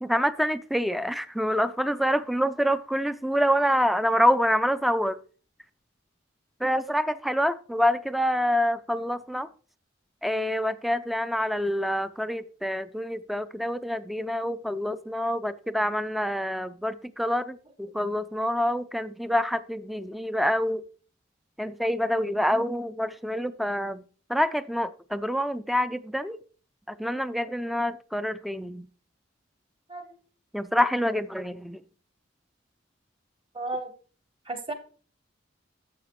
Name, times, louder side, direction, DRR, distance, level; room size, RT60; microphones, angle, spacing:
voice 1, 0.0-5.2 6.6-9.5 10.2-20.8 21.6-24.0 24.3-26.4 26.9-28.9 30.5-31.8, equal, ahead, 0.3 m, -26 dB
voice 2, 33.5-33.9 34.5-34.7, right 2 dB, 25° right, 1.1 m, -33 dB
11.5 x 7.1 x 3.1 m
head